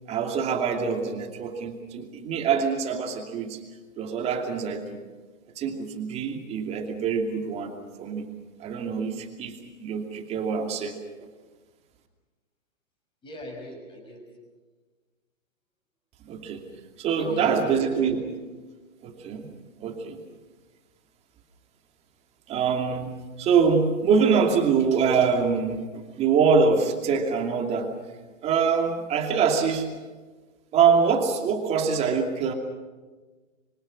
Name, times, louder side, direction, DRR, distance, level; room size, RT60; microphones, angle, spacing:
voice 1, 0.1-3.6 4.0-5.0 5.6-8.3 8.6-9.5 9.8-10.9 16.3-16.6 17.0-18.2 19.0-19.5 19.8-20.2 22.5-27.9 28.4-29.9 30.7-32.5, right 6 dB, 15° right, 4 dB, 2.6 m, -24 dB
voice 2, 13.2-14.2 17.0-18.2, equal, 10° left, 2 dB, 6.0 m, -40 dB
27.0 x 25.0 x 6.5 m, 1.3 s
hypercardioid pair, 160°, 40 cm